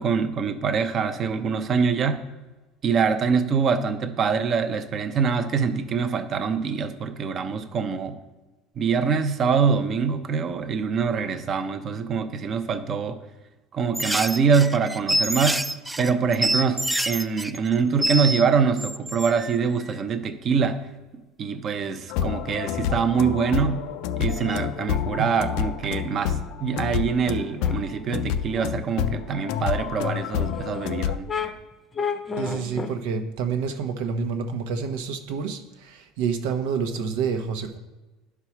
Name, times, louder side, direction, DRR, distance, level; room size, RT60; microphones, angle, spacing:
voice 1, 0.0-2.2 2.8-8.2 8.8-13.2 13.7-15.6 16.0-20.8 21.4-23.8 24.2-26.3 26.6-31.3, right 5 dB, 35° right, 9 dB, 0.7 m, -24 dB
sound 1, 13.9-18.4 18.8-19.6 24.3-24.6, right 1 dB, 5° right, 0.3 m, -27 dB
sound 2, 22.1-31.2, left 9 dB, 70° left, 0.5 m, -28 dB
sound 3, 27.5-27.7 28.5-28.6 29.1-29.2 30.5-30.6 31.3-31.5 31.9-32.9, left 5 dB, 20° left, 0.7 m, -30 dB
voice 2, 32.4-37.8, right 6 dB, 85° right, 6 dB, 1.1 m, -28 dB
11.0 x 4.8 x 5.9 m, 1.1 s
cardioid pair, 150°, 0 cm